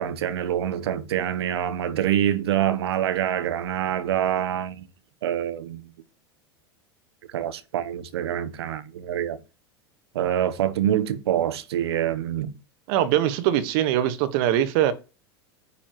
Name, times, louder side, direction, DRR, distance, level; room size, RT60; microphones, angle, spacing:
voice 1, 0.0-4.9 5.2-5.8 7.3-9.4 10.1-12.5, right 10 dB, 80° right, 1.0 m, -26 dB
voice 2, 12.9-14.9, right 11 dB, 60° right, 1.4 m, -22 dB
9.7 x 7.1 x 3.1 m
hypercardioid pair, 95°, 13 cm